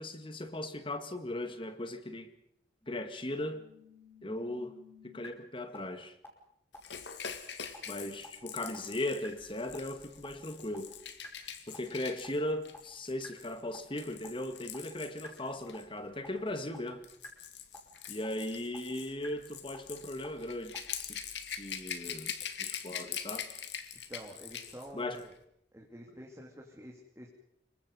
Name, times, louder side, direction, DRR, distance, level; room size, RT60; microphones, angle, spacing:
voice 1, 0.0-2.3 2.9-3.6 4.2-4.7 5.0-6.2 7.9-10.9 11.7-17.1 18.1-22.3 22.6-23.5 24.9-25.2, left 1 dB, 30° left, 1.8 m, -38 dB
sound 1, 2.8-5.3 5.7-5.8 6.2-6.3 6.7-6.8 7.2-7.3 7.7-7.8 8.2-8.3 8.7-8.8 9.2-9.3 9.7-9.8 10.2-10.3 10.7-10.8 11.2-11.3 11.7-11.8 12.2-12.3 12.7-12.8 13.2-13.3 13.7-13.8 14.2-14.3 14.7-14.8 15.2-15.3 15.7-15.8 16.2-16.3 16.7-16.8 17.2-17.3 17.7-17.8 18.2-18.3 18.7-18.8 19.2-19.3 19.7-19.8 20.2-20.3 20.7-20.8, left 2 dB, 15° left, 5.2 m, -50 dB
Rattle / Rattle (instrument), 6.8-15.8 16.8-24.9 25.2-25.3, left 8 dB, 80° left, 2.1 m, -43 dB
voice 2, 24.1-25.3 25.7-27.3, equal, 15° right, 3.0 m, -48 dB
26.5 x 23.5 x 5.6 m
head